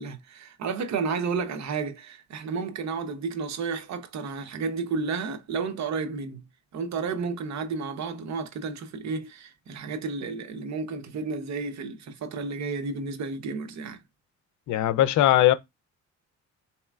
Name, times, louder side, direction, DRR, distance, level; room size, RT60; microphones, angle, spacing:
voice 1, 0.0-6.4 6.7-14.0, right 4 dB, 65° right, 0.9 m, -32 dB
voice 2, 14.7-15.5, left 13 dB, 75° left, 0.5 m, -20 dB
4.2 x 2.9 x 2.4 m
cardioid pair, 90°, 30 cm